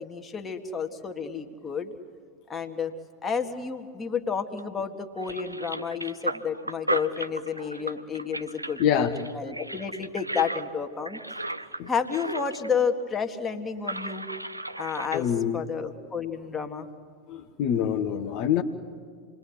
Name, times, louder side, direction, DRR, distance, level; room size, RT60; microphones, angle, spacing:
voice 1, 0.0-1.9 2.5-2.9 3.2-11.2 11.9-14.3 14.8-16.9, left 6 dB, 15° left, 4 dB, 1.9 m, -31 dB
sound 1, 4.6-4.8 5.2-12.7 13.0-13.1 13.7-15.2, right 1 dB, 85° right, 0.8 m, -35 dB
voice 2, 8.8-9.2 11.8-11.9 15.1-15.6 17.3-18.6, left 9 dB, 45° left, 3 dB, 1.3 m, -25 dB
28.0 x 21.5 x 9.7 m, 2.1 s
figure-of-eight pair, 90°, 0 cm